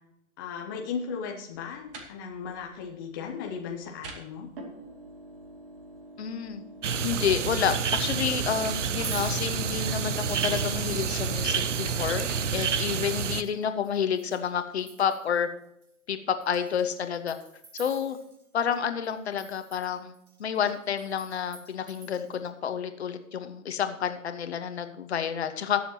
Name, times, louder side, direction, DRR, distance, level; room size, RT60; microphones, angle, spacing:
voice 1, 0.4-4.5, left 6 dB, 15° left, 1 dB, 0.6 m, -36 dB
sound 1, 1.5-12.7, right 2 dB, 40° right, 2.4 m, -47 dB
voice 2, 6.2-6.6 7.0-12.3 12.5-15.5 16.1-17.4 17.7-18.2 18.5-25.8, left 8 dB, 50° left, 8 dB, 1.3 m, -29 dB
sound 2, 6.8-13.4, right 6 dB, 55° right, 0.8 m, -29 dB
Chink clink, 9.0-14.5 14.8-15.4 15.8-15.9 16.4-18.8 19.0-22.5, right 3 dB, 90° right, 1.7 m, -48 dB
21.0 x 7.2 x 2.9 m, 0.80 s
figure-of-eight pair, 135°, 43 cm